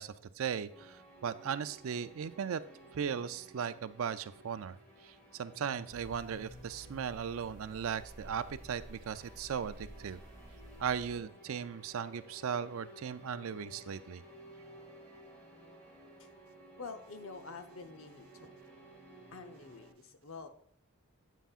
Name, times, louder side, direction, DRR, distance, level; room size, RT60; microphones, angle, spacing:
voice 1, 0.0-2.6 2.9-4.8 5.0-10.2 10.8-14.2, right 7 dB, 70° right, 13 dB, 0.4 m, -37 dB
sound 1, 0.7-19.9, right 1 dB, 10° left, 2.1 m, -55 dB
sound 2, 5.9-11.2, right 1 dB, 35° right, 0.8 m, -53 dB
voice 2, 16.7-18.5 19.3-20.5, left 4 dB, 65° left, 7 dB, 0.8 m, -47 dB
9.1 x 8.3 x 2.4 m, 0.66 s
head